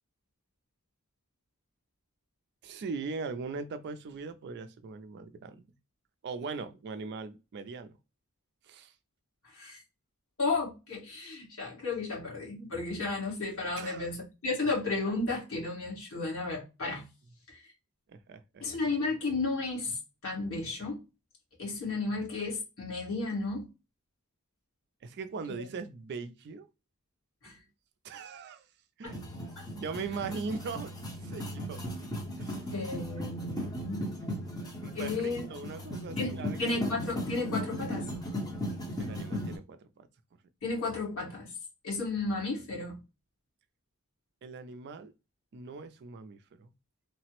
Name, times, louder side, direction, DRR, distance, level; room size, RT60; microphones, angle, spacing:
voice 1, 2.6-5.7 6.2-8.0 8.6-8.9 13.8-14.1 18.1-18.6 25.0-26.7 27.4-27.5 28.0-28.7 29.0-29.2 29.7-30.9 31.2-31.8 32.4-32.8 34.8-36.9 39.0-40.1 44.4-45.1 45.5-46.7, right 4 dB, 50° right, 0.3 m, -40 dB
voice 2, 10.4-17.1 17.5-17.7 18.6-21.0 21.6-23.7 27.4-27.6 29.0-29.1 29.6-29.7 32.7-34.1 34.9-35.4 36.2-38.1 40.6-41.5 41.8-43.0, left 3 dB, 65° left, 1.5 m, -33 dB
sound 1, 29.1-39.6, left 1 dB, 15° left, 0.7 m, -37 dB
3.2 x 2.0 x 2.9 m
head